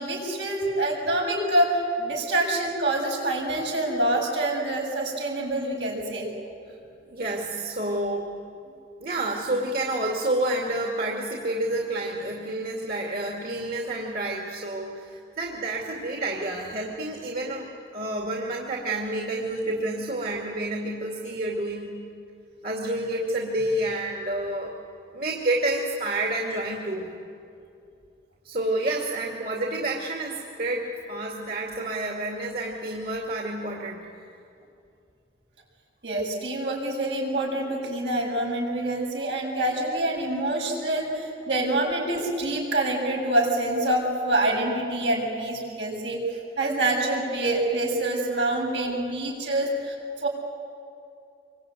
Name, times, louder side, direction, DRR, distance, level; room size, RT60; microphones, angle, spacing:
voice 1, 0.0-6.3 36.0-46.2 46.6-50.3, right 1 dB, 85° right, -1 dB, 7.4 m, -26 dB
voice 2, 7.1-8.3 9.0-17.7 17.9-22.0 22.6-24.7 25.1-27.1 28.4-34.0, right 1 dB, 55° right, -1 dB, 2.5 m, -29 dB
26.5 x 23.5 x 9.2 m, 2.6 s
head